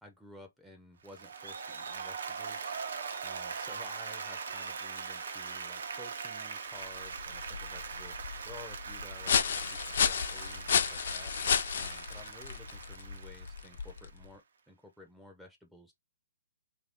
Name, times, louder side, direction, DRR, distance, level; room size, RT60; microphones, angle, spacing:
voice 1, 0.0-11.3 11.8-15.9, left 2 dB, ahead, 0.5 m, -53 dB
Applause, 1.0-14.2, right 5 dB, 70° right, 0.6 m, -41 dB
sound 1, 6.8-14.3, left 7 dB, 60° left, 0.4 m, -33 dB
2.7 x 2.5 x 3.5 m
hypercardioid pair, 165°, 0 cm